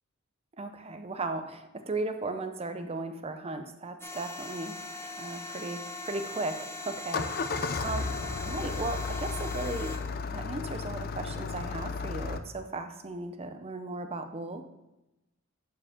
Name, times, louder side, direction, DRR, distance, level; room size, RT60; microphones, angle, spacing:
voice 1, 0.6-8.1 8.4-10.0 10.3-14.6, right 2 dB, 30° right, 7 dB, 0.6 m, -36 dB
sound 1, 4.0-10.0, left 2 dB, 10° left, 0.7 m, -40 dB
Engine starting, 7.0-12.4, left 4 dB, 45° left, 0.5 m, -34 dB
11.5 x 5.0 x 3.6 m, 0.96 s
head